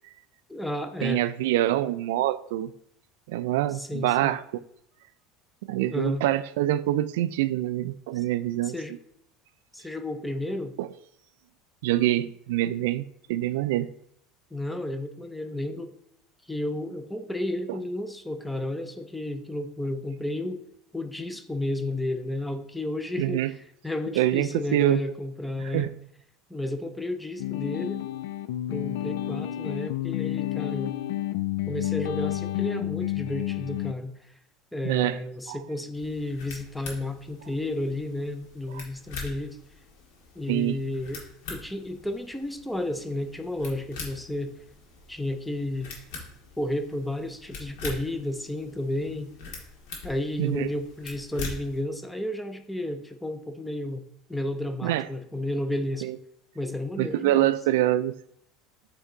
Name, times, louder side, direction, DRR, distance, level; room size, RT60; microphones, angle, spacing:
voice 1, 0.5-1.2 3.7-4.4 5.9-6.2 8.6-8.9 9.7-10.7 14.5-15.9 16.5-20.6 20.9-23.6 23.8-25.9 26.5-28.1 28.7-31.0 31.7-34.1 34.7-39.6 40.4-41.2 41.5-44.6 45.1-45.9 46.6-49.3 50.0-54.0 54.3-56.1 56.5-57.6, left 1 dB, 5° left, 0.4 m, -32 dB
voice 2, 1.0-2.7 3.3-4.4 5.7-8.7 10.8-10.9 11.8-13.0 13.3-13.9 17.7-17.8 23.2-23.5 24.2-25.0 25.7-25.9 34.8-35.2 35.5-35.6 38.7-38.8 40.5-40.8 50.4-50.7 54.8-55.0 56.0-56.2 57.0-58.1, right 14 dB, 85° right, 0.3 m, -25 dB
sound 1, 27.4-33.9, left 14 dB, 85° left, 0.3 m, -30 dB
sound 2, 35.9-51.8, left 4 dB, 70° left, 2.0 m, -43 dB
8.2 x 3.4 x 3.8 m
cardioid pair, 170°, 0 cm